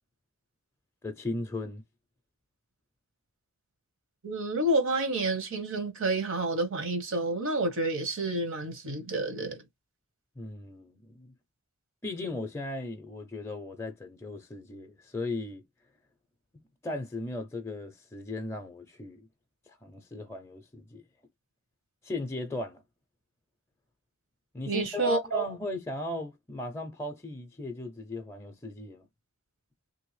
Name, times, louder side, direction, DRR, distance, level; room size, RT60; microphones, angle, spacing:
voice 1, 1.0-1.8 10.4-11.3 12.0-15.6 16.8-19.3 19.8-21.0 22.0-22.8 24.5-29.1, left 2 dB, 15° left, 0.5 m, -37 dB
voice 2, 4.2-9.6 24.7-25.5, right 2 dB, 65° right, 1.0 m, -29 dB
3.3 x 2.7 x 3.1 m
head